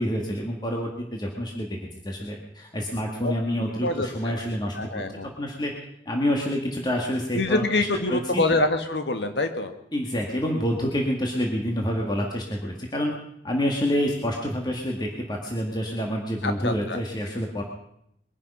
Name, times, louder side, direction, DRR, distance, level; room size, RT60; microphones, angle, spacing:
voice 1, 0.0-1.7 2.1-2.4 2.7-4.7 5.4-5.7 6.1-8.4 9.9-13.1 13.4-17.6, equal, 25° left, 0 dB, 1.9 m, -27 dB
voice 2, 3.2-4.4 4.8-5.3 7.3-9.7 16.4-17.0, left 2 dB, 75° left, 7 dB, 1.8 m, -26 dB
22.0 x 11.0 x 5.6 m, 0.76 s
head